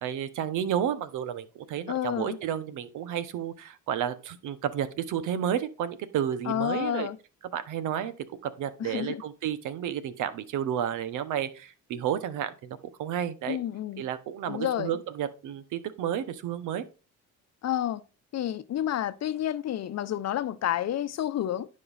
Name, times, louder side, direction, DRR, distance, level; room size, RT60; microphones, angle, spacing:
voice 1, 0.0-7.1 7.5-8.1 8.4-13.6 14.0-16.8, right 9 dB, 90° right, 1.0 m, -31 dB
voice 2, 1.9-2.4 6.4-7.2 8.8-9.2 13.5-14.0 14.5-14.9 17.6-18.0 18.3-21.7, left 11 dB, 60° left, 0.7 m, -30 dB
11.0 x 5.4 x 4.0 m
cardioid pair, 90°, 30 cm